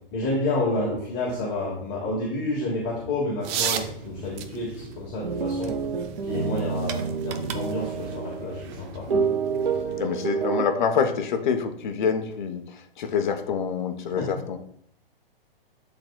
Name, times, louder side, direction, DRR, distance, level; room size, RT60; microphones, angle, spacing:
voice 1, 0.1-5.8 6.2-9.1 14.2-14.3, left 2 dB, 30° left, -4 dB, 1.7 m, -29 dB
sound 1, 3.4-10.0, right 7 dB, 25° right, 0.6 m, -36 dB
sound 2, 5.2-8.6 9.1-10.6, right 5 dB, 70° right, 0.9 m, -28 dB
voice 2, 10.0-14.6, left 6 dB, 55° left, 8 dB, 0.9 m, -26 dB
11.5 x 3.9 x 2.2 m, 0.68 s
figure-of-eight pair, 115°, 29 cm